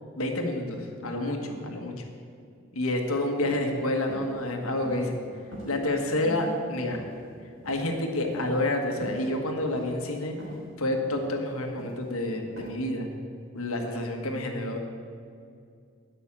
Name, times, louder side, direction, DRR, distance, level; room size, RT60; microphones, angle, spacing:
voice 1, 0.2-2.0 2.7-5.3 5.7-7.0 7.6-10.4 10.8-13.1 13.5-14.8, left 1 dB, 80° left, 3 dB, 1.6 m, -29 dB
sound 1, 3.4-3.6 4.1-4.3 4.8-5.1 5.5-6.0 6.2-6.5 6.9-7.4 7.6-7.9 8.3-8.5 9.0-9.2 9.7-9.9 10.4-10.6 11.0-11.3 11.8-12.0 12.6-12.7, equal, 65° right, 3.6 m, -42 dB
10.5 x 6.2 x 8.7 m, 2.3 s
head